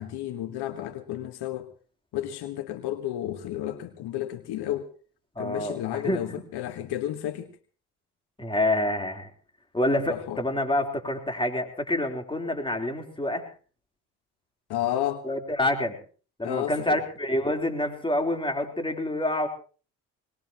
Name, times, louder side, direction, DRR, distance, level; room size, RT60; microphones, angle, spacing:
voice 1, 0.0-1.7 2.1-4.9 5.4-7.6 10.0-10.4 14.7-15.2 16.4-17.0, left 12 dB, 70° left, 10 dB, 1.5 m, -32 dB
voice 2, 5.4-6.3 8.4-9.3 9.7-13.4 15.2-16.0 16.4-19.5, left 1 dB, 10° left, 3 dB, 3.8 m, -27 dB
21.0 x 21.0 x 3.0 m, 0.39 s
supercardioid pair, 65°, 41 cm